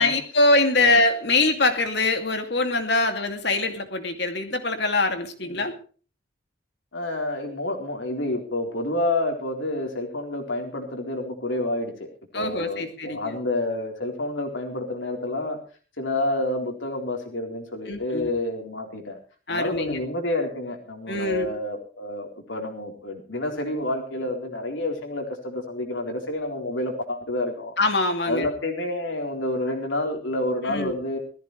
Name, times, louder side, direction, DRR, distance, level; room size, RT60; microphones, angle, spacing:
voice 1, 0.0-5.7 12.3-13.4 17.9-18.3 19.5-20.0 21.1-21.5 27.8-28.5 30.7-31.0, left 2 dB, 60° left, 6 dB, 2.5 m, -23 dB
voice 2, 6.9-12.1 12.3-15.6 16.0-19.2 19.5-27.7 28.2-31.2, left 1 dB, 85° left, 2 dB, 3.9 m, -29 dB
20.0 x 14.5 x 3.3 m, 0.38 s
head